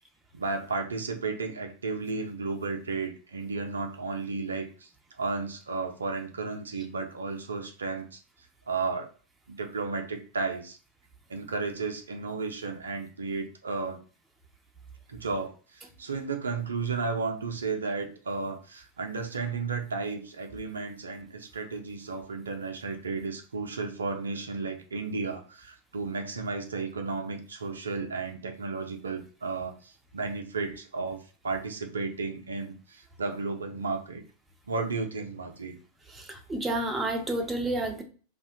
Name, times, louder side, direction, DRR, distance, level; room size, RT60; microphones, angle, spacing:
voice 1, 0.3-4.9 5.2-8.2 8.7-9.1 9.5-10.8 11.3-14.0 15.1-31.2 31.4-34.2 34.7-35.8, right 4 dB, 70° right, 4 dB, 0.4 m, -33 dB
voice 2, 36.1-38.0, right 1 dB, 10° right, 3 dB, 0.4 m, -30 dB
2.4 x 2.1 x 2.6 m, 0.39 s
figure-of-eight pair, 90°, 0 cm